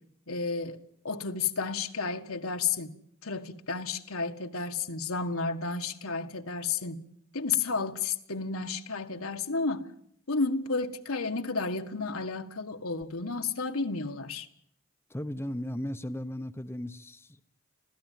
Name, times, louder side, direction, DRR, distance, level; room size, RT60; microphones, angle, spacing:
voice 1, 0.3-0.8 1.0-2.9 3.2-7.0 7.3-9.9 10.3-14.5, left 4 dB, 75° left, 1.8 m, -32 dB
voice 2, 15.1-17.4, left 1 dB, 10° left, 0.9 m, -36 dB
26.0 x 16.5 x 9.4 m
head